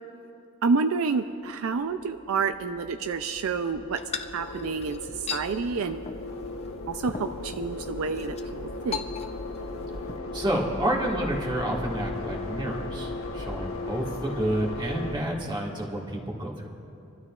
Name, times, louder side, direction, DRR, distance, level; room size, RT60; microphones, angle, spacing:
voice 1, 0.6-4.0 4.3-6.0 6.9-8.4 8.8-9.0, right 4 dB, 70° right, 8 dB, 0.4 m, -28 dB
sound 1, 1.5-15.1, left 2 dB, 75° left, 1.1 m, -37 dB
sound 2, 4.0-5.5 6.0-6.3 6.6-6.7 7.1-7.7 8.1-8.4 8.9-9.6 9.8-10.2, left 6 dB, 30° left, 0.5 m, -36 dB
voice 2, 10.3-16.7, right 1 dB, 20° right, -2 dB, 1.7 m, -29 dB
28.0 x 12.5 x 2.4 m, 2.7 s
head